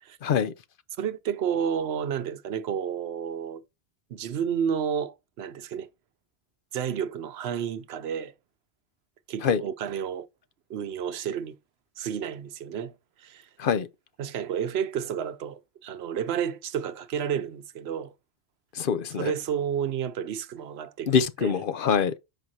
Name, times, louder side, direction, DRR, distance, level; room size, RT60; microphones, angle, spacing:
voice 1, 0.2-0.5 9.4-9.6 13.6-13.9 18.7-19.3 21.1-22.1, left 7 dB, 60° left, 0.8 m, -24 dB
voice 2, 1.0-3.6 4.1-5.9 6.7-8.3 9.3-10.3 10.7-11.6 12.0-12.9 13.2-13.5 14.2-18.1 19.2-21.6, right 8 dB, 80° right, 0.9 m, -31 dB
7.4 x 5.2 x 2.7 m
omnidirectional pair, 1.1 m